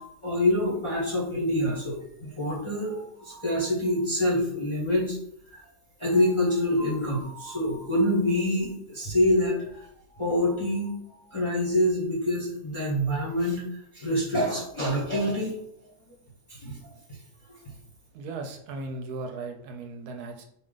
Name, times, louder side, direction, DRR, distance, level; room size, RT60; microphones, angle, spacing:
voice 1, 0.0-5.2 5.5-5.6 6.0-9.9 10.2-10.9 11.3-13.6 13.9-15.6 16.5-17.2, left 1 dB, 25° left, -5 dB, 0.8 m, -26 dB
voice 2, 18.1-20.4, right 3 dB, 75° right, 4 dB, 1.0 m, -37 dB
4.3 x 2.5 x 3.8 m, 0.71 s
omnidirectional pair, 1.7 m